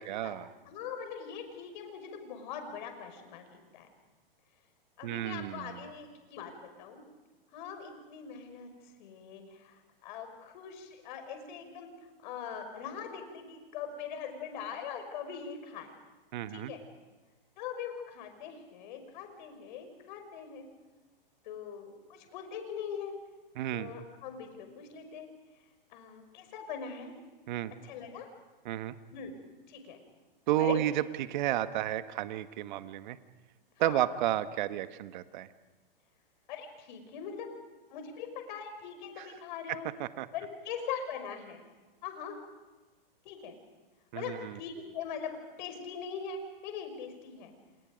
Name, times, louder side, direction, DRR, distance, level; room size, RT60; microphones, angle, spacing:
voice 1, 0.0-0.5 5.0-5.8 16.3-16.7 23.5-23.9 27.5-27.7 28.6-28.9 30.5-33.2 33.8-35.5 39.2-39.3 40.0-40.3 44.1-44.6, right 13 dB, 50° right, 11 dB, 1.4 m, -32 dB
voice 2, 0.7-3.9 5.0-7.0 7.5-8.7 9.0-11.9 12.2-15.9 16.5-16.8 17.6-20.7 21.4-23.1 23.7-25.3 25.9-27.1 27.8-28.3 29.1-29.3 29.7-30.0 30.6-30.8 33.8-34.0 36.5-37.5 37.9-39.9 40.3-41.6 42.0-42.4 43.2-43.5 44.1-47.5, left 7 dB, 55° left, 6 dB, 5.7 m, -41 dB
29.5 x 27.5 x 5.3 m, 1.2 s
hypercardioid pair, 125°, 29 cm